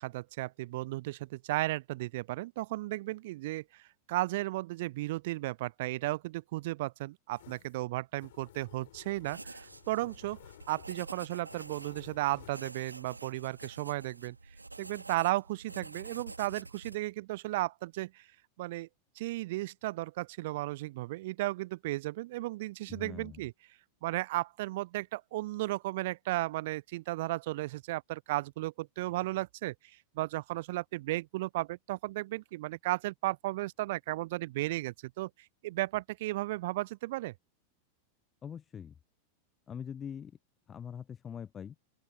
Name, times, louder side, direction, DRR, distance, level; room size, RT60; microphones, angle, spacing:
voice 1, 0.0-10.4 10.7-14.4 14.8-18.3 18.6-18.9 19.2-23.5 24.0-35.3 35.6-37.3, right 18 dB, 50° right, 0.3 m, -34 dB
sound 1, 7.3-12.5, left 14 dB, 55° left, 7.6 m, -56 dB
sound 2, 9.2-17.0, right 2 dB, 80° right, 2.4 m, -48 dB
voice 2, 22.9-23.4 38.4-39.0 39.7-40.4 40.7-41.8, left 8 dB, 20° left, 0.4 m, -43 dB
open air
figure-of-eight pair, 90°, 0 cm